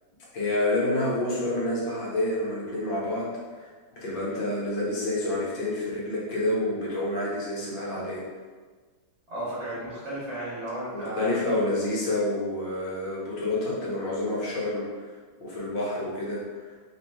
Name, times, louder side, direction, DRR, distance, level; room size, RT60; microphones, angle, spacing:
voice 1, 0.3-8.3 10.9-15.1 15.4-16.7, left 1 dB, 70° left, -6 dB, 1.6 m, -28 dB
voice 2, 9.3-11.4, right 1 dB, 40° right, -9 dB, 1.2 m, -34 dB
3.6 x 2.8 x 3.3 m, 1.4 s
omnidirectional pair, 2.1 m